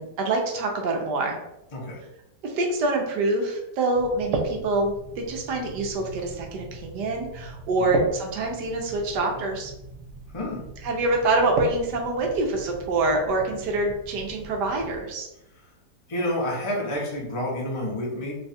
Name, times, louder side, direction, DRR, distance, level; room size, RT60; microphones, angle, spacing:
voice 1, 0.0-1.4 2.4-9.7 10.8-15.3, right 2 dB, 80° right, 1 dB, 1.3 m, -26 dB
sound 1, 3.9-15.0, right 3 dB, 60° right, 0.8 m, -35 dB
voice 2, 16.1-18.3, left 1 dB, 30° left, -3 dB, 0.6 m, -29 dB
3.3 x 2.3 x 4.1 m, 0.88 s
omnidirectional pair, 1.8 m